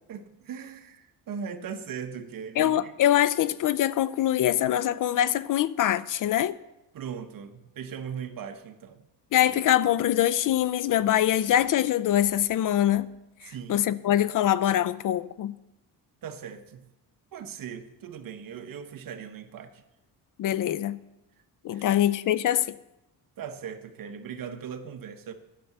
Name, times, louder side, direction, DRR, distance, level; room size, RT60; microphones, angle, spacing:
voice 1, 0.1-2.9 6.9-9.0 13.4-13.9 16.2-16.9 17.3-19.8 21.7-22.0 23.4-25.3, right 7 dB, 55° right, 1.1 m, -39 dB
voice 2, 2.6-6.5 9.3-13.1 13.4-15.5 20.4-21.0 21.6-22.7, left 12 dB, 55° left, 0.5 m, -24 dB
10.0 x 6.8 x 7.9 m
cardioid pair, 115°, 40 cm